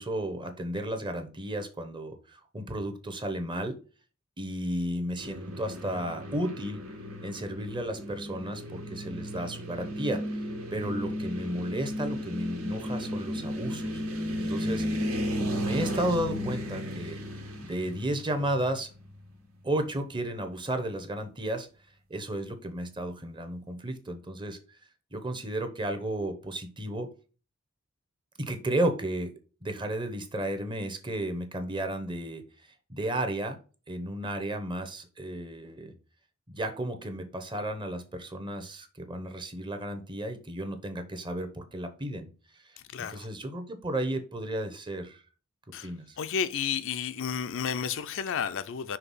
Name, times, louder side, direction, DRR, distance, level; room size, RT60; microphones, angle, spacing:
voice 1, 0.0-3.8 4.4-6.8 7.2-10.4 10.7-14.0 14.4-17.2 17.6-18.9 19.6-21.7 22.1-24.6 25.1-27.1 28.4-29.3 29.6-32.4 32.9-33.6 33.9-35.9 36.5-42.3 42.6-45.2 45.8-46.2, right 1 dB, 25° right, 0.8 m, -33 dB
sound 1, 5.2-19.4, equal, 85° right, 1.7 m, -34 dB
voice 2, 42.9-43.3 45.7-45.9 46.2-49.0, left 7 dB, 65° left, 0.4 m, -31 dB
5.8 x 3.3 x 5.5 m
head